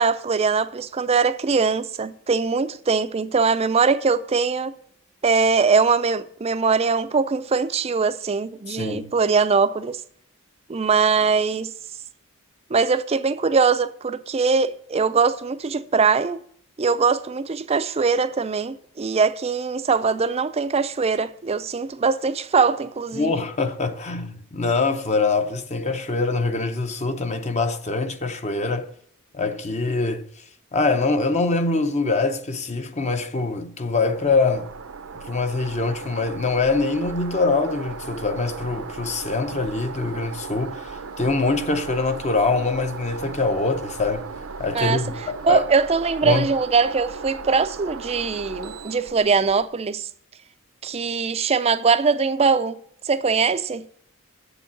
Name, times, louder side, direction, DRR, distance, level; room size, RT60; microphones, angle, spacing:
voice 1, 0.0-4.7 5.2-10.0 10.7-11.7 12.7-16.4 16.8-23.3 44.7-45.0 45.4-50.1 50.8-52.8 53.0-53.8, right 5 dB, 30° right, 0.4 m, -21 dB
voice 2, 8.7-9.1 23.1-28.9 29.3-30.2 30.7-34.7 35.3-44.3 44.6-45.6 46.2-46.5, left 3 dB, 30° left, 0.7 m, -24 dB
sound 1, 34.1-49.7, right 5 dB, 65° right, 0.7 m, -37 dB
7.8 x 7.0 x 7.1 m
head